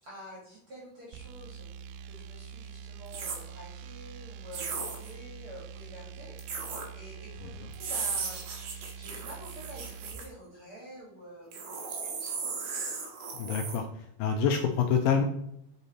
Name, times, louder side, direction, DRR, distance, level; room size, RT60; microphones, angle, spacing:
voice 1, 0.0-1.7 2.0-12.6, equal, 50° right, -4 dB, 1.9 m, -48 dB
sound 1, 1.1-10.2, right 7 dB, 85° right, 1.9 m, -45 dB
sound 2, 3.1-3.4 4.5-5.1 6.4-6.9 7.7-10.3 11.5-13.8, right 5 dB, 65° right, 1.9 m, -36 dB
voice 2, 13.3-15.3, left 6 dB, 80° left, 5 dB, 2.1 m, -27 dB
8.2 x 4.1 x 4.0 m, 0.77 s
omnidirectional pair, 4.4 m